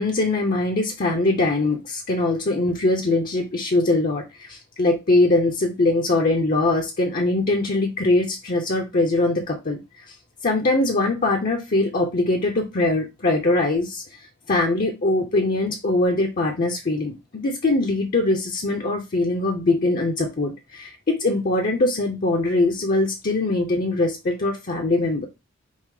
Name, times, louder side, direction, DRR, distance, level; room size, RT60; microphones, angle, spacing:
voice 1, 0.0-10.1 10.4-25.3, left 2 dB, 45° left, 0.7 m, -22 dB
5.5 x 2.0 x 4.7 m
head